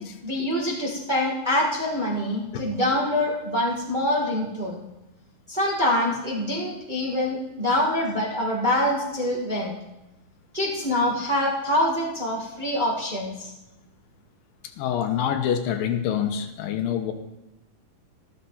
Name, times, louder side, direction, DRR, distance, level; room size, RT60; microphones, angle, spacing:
voice 1, 0.2-4.8 5.5-9.7 10.5-13.5, left 1 dB, 20° right, -3 dB, 1.6 m, -25 dB
voice 2, 14.8-17.1, left 9 dB, 80° left, 7 dB, 2.6 m, -26 dB
13.0 x 13.0 x 4.3 m, 0.97 s
omnidirectional pair, 4.2 m